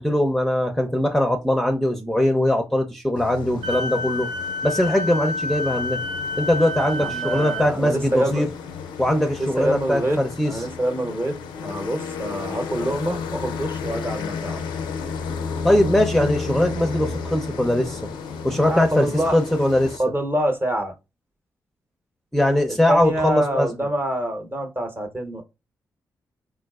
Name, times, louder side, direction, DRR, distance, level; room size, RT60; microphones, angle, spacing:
voice 1, 0.0-4.3 4.6-6.0 6.4-8.5 9.0-10.5 15.6-18.0 18.4-20.0 22.3-23.7, left 1 dB, 5° left, 0.6 m, -21 dB
sound 1, 3.1-20.0, left 5 dB, 90° left, 0.4 m, -33 dB
Wind instrument woodwind instrument, 3.6-7.7, left 2 dB, 65° right, 0.5 m, -29 dB
voice 2, 7.0-8.5 9.4-10.2 10.4-14.8 18.6-19.4 20.0-20.9 22.9-25.4, right 1 dB, 30° right, 0.9 m, -26 dB
3.8 x 2.4 x 2.3 m
supercardioid pair, 45°, 8 cm